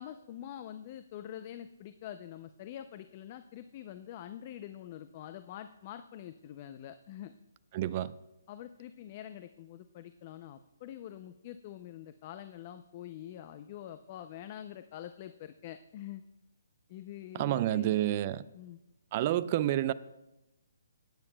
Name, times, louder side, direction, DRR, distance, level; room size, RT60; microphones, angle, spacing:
voice 1, 0.0-7.3 8.5-16.2 16.9-18.0 18.5-18.8, left 11 dB, 35° left, 0.4 m, -45 dB
voice 2, 7.7-8.1 17.3-18.4 19.1-19.9, right 13 dB, 35° right, 0.4 m, -29 dB
18.0 x 9.0 x 2.2 m
hypercardioid pair, 155°, 0 cm